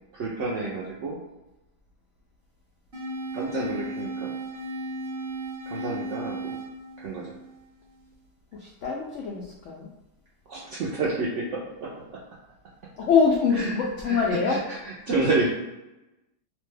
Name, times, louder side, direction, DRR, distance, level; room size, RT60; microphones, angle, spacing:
voice 1, 0.1-1.2 3.3-4.3 5.7-6.6 7.0-7.3 10.5-12.2 13.6-13.8 14.0-14.2 14.5-15.5, right 3 dB, 75° right, -5 dB, 0.7 m, -29 dB
sound 1, 2.9-8.0, right 1 dB, 45° right, 0.9 m, -35 dB
voice 2, 8.5-9.9 13.0-14.7 15.2-15.3, left 5 dB, 85° left, -2 dB, 0.6 m, -24 dB
2.8 x 2.2 x 3.2 m, 0.98 s
omnidirectional pair, 1.8 m